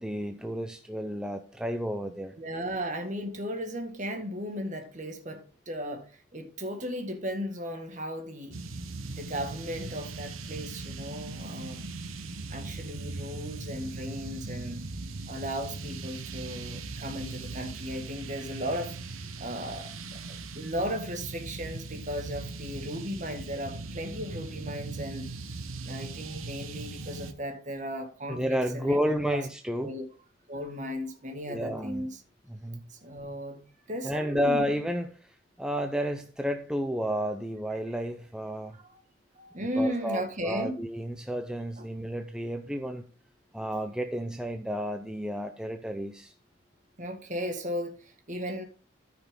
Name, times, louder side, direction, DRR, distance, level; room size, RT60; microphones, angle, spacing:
voice 1, 0.0-2.3 28.3-29.9 31.5-32.1 32.5-32.8 34.0-35.1 35.6-38.8 39.8-43.0 43.5-46.3, equal, 5° right, 0.6 m, -31 dB
voice 2, 2.4-8.6 9.0-11.8 12.5-14.8 15.3-25.3 25.8-29.4 29.8-30.0 30.5-32.2 32.9-33.6 33.9-34.7 38.8-39.0 39.4-40.8 41.8-41.9 47.0-48.6, equal, 40° right, 1.7 m, -36 dB
sound 1, 8.5-27.3, right 3 dB, 85° right, 1.0 m, -39 dB
13.5 x 5.8 x 3.7 m
head